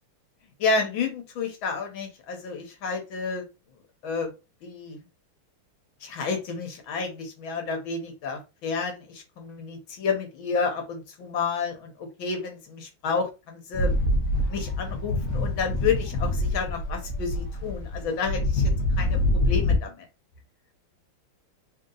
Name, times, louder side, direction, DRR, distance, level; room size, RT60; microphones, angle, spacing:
voice 1, 0.6-3.4 4.0-4.3 4.6-5.0 6.0-14.0 14.5-18.7 19.0-19.2 19.5-20.1, left 5 dB, 70° left, 4 dB, 1.7 m, -30 dB
sound 1, 13.7-19.8, left 1 dB, 50° left, 1.1 m, -25 dB
3.5 x 2.9 x 3.8 m, 0.28 s
omnidirectional pair, 2.4 m